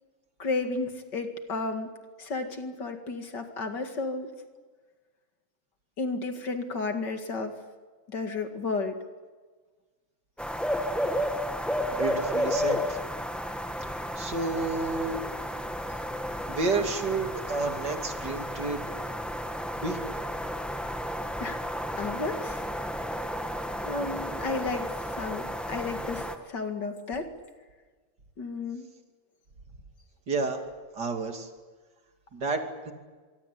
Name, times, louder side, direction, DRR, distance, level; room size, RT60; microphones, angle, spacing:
voice 1, 0.4-1.9 2.2-4.3 6.0-7.6 8.1-9.0 21.4-21.6 22.0-22.6 23.8-27.3 28.4-28.9, left 3 dB, 60° left, 6 dB, 2.7 m, -32 dB
sound 1, 10.4-26.4, equal, ahead, 1.3 m, -32 dB
voice 2, 11.9-13.0 14.2-15.2 16.5-18.8 19.8-20.0 30.3-30.6 30.9-31.5 32.3-32.9, right 3 dB, 55° right, 4 dB, 3.2 m, -30 dB
24.5 x 24.0 x 8.4 m, 1.4 s
omnidirectional pair, 2.2 m